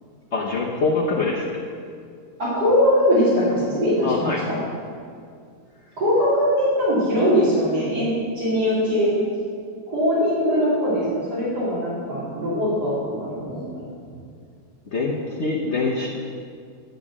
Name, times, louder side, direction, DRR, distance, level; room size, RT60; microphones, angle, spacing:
voice 1, 0.3-1.6 4.0-4.4 14.9-16.1, left 3 dB, 50° left, -3 dB, 1.3 m, -24 dB
voice 2, 2.4-4.6 6.0-9.2 9.9-13.6 14.0-14.1, equal, 85° right, -10 dB, 3.5 m, -21 dB
11.0 x 7.7 x 6.1 m, 2.2 s
omnidirectional pair, 1.7 m